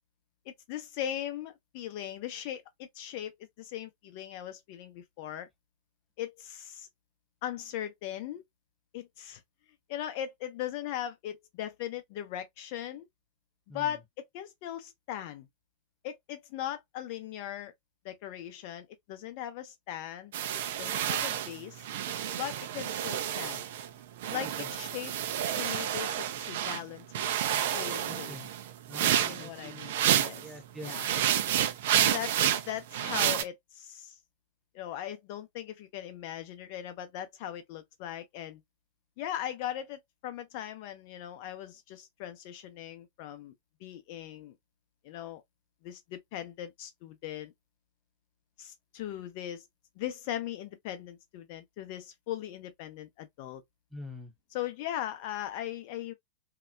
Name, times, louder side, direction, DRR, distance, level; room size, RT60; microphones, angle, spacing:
voice 1, 0.5-5.5 6.2-6.9 7.4-8.4 8.9-9.4 9.9-13.1 13.7-15.5 16.0-17.7 18.0-21.8 22.3-23.7 24.3-25.1 25.5-27.1 27.3-28.4 29.3-30.4 30.8-31.1 31.9-34.1 34.7-38.6 39.2-43.5 43.8-44.6 45.0-45.4 45.8-47.5 48.6-49.7 50.0-53.6 54.5-56.1, left 11 dB, 45° left, 0.5 m, -39 dB
sound 1, 20.3-23.9 24.2-26.8 27.1-30.5 30.8-33.4, right 10 dB, 55° right, 0.3 m, -30 dB
voice 2, 24.4-24.7 28.0-28.5 28.9-31.2 53.9-54.3, equal, 5° right, 0.7 m, -46 dB
2.9 x 2.0 x 2.3 m
figure-of-eight pair, 90°, 0 cm